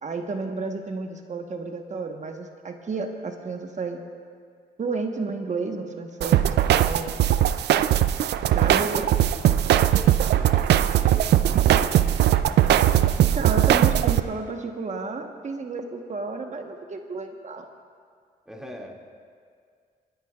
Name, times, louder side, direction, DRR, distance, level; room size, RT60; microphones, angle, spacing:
voice 1, 0.0-4.0 4.8-7.1 8.5-9.1 13.2-17.6, right 4 dB, 45° right, 4 dB, 1.1 m, -31 dB
sound 1, 6.2-14.2, right 11 dB, 80° right, 0.4 m, -20 dB
voice 2, 8.8-12.4 18.5-19.0, equal, 5° right, -1 dB, 2.2 m, -41 dB
27.5 x 10.0 x 2.4 m, 2.1 s
cardioid pair, 80°, 17 cm